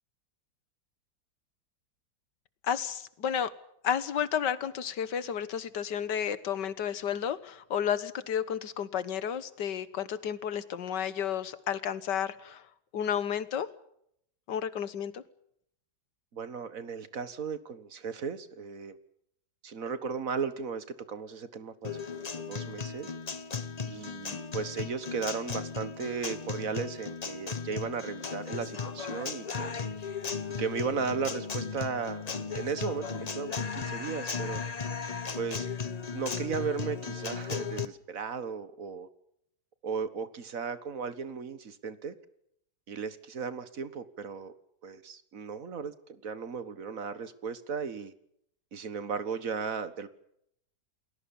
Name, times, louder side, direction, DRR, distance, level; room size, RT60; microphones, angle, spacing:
voice 1, 2.6-3.5 3.8-12.6 12.9-13.7 14.5-15.2, left 8 dB, 80° left, 15 dB, 1.9 m, -32 dB
voice 2, 16.3-19.0 19.6-23.1 23.8-29.8 30.6-34.6 35.4-35.7 36.1-39.1 39.8-42.1 42.9-44.5 44.8-48.1 48.7-50.1, right 5 dB, 55° right, 13 dB, 1.8 m, -36 dB
Guitar, 21.8-37.9, left 5 dB, 30° left, 0.8 m, -36 dB
29.0 x 20.0 x 7.2 m, 0.73 s
omnidirectional pair, 1.8 m